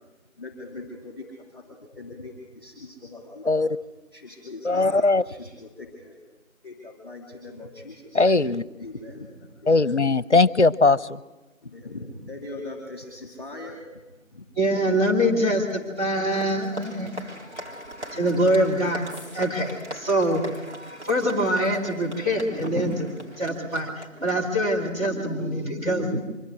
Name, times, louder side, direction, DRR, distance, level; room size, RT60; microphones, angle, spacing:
voice 1, 0.4-3.7 4.1-6.2 6.6-8.3 8.8-9.7 11.6-14.0 14.3-14.5, left 2 dB, 20° left, 2.6 m, -40 dB
voice 2, 4.6-5.2 8.1-8.6 9.7-11.2, left 3 dB, 55° left, 0.7 m, -19 dB
voice 3, 14.6-17.3 18.1-19.1 19.3-20.5 21.0-26.2, equal, 30° right, 2.4 m, -24 dB
Applause, 15.0-25.1, equal, 55° right, 3.3 m, -42 dB
sound 1, 19.1-19.4 19.8-19.9 20.5-22.2 23.1-23.2 23.4-23.5, left 1 dB, 5° right, 6.8 m, -52 dB
24.0 x 13.0 x 9.5 m
figure-of-eight pair, 175°, 41 cm